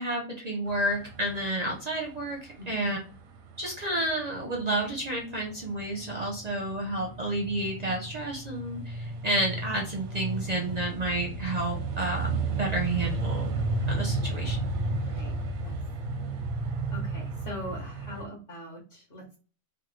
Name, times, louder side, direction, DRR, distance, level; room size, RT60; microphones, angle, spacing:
voice 1, 0.0-2.4 2.7-3.0 3.6-13.5 13.9-14.7, right 1 dB, 50° right, 0 dB, 0.5 m, -30 dB
sound 1, 0.7-18.3, right 2 dB, 85° right, 1.1 m, -33 dB
voice 2, 2.6-2.9 15.0-15.3 15.6-15.8 16.9-19.4, equal, 50° left, -3 dB, 1.1 m, -41 dB
3.5 x 2.0 x 3.0 m, 0.37 s
omnidirectional pair, 1.4 m